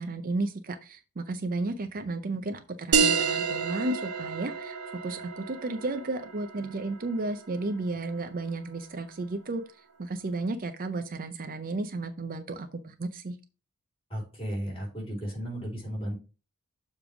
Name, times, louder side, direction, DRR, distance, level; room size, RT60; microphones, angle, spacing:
voice 1, 0.0-4.8 5.0-9.6 10.0-13.4, right 2 dB, 40° right, 9 dB, 0.5 m, -33 dB
sound 1, 2.9-8.0, right 6 dB, 85° right, 0.7 m, -29 dB
voice 2, 14.1-16.2, equal, 25° left, -2 dB, 3.4 m, -34 dB
6.9 x 3.3 x 6.0 m, 0.32 s
head